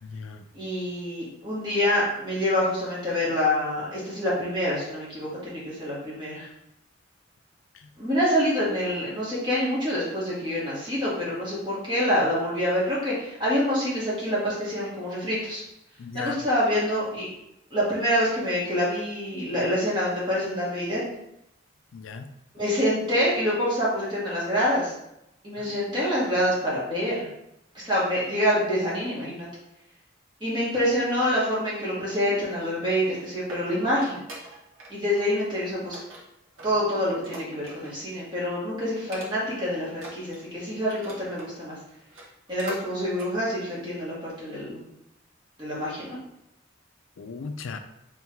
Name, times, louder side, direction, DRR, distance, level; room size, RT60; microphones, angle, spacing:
voice 1, 0.0-0.4 7.7-7.9 16.0-16.4 21.9-22.3 25.6-25.7 47.2-47.8, left 5 dB, 80° left, 7 dB, 0.4 m, -37 dB
voice 2, 0.5-6.5 8.0-15.6 16.1-17.3 17.7-21.0 22.5-24.9 25.4-27.3 27.7-29.5 30.4-34.2 34.9-36.0 36.6-41.8 42.5-44.8 45.6-46.2, equal, 25° right, -8 dB, 1.7 m, -26 dB
sound 1, 33.1-34.9 35.2-35.5 35.9-38.1 38.4-38.6 39.0-39.6 39.9-41.5 42.0-42.8 43.1-43.3 43.8-43.9, right 2 dB, 90° right, 1.2 m, -44 dB
3.5 x 3.2 x 4.5 m, 0.83 s
head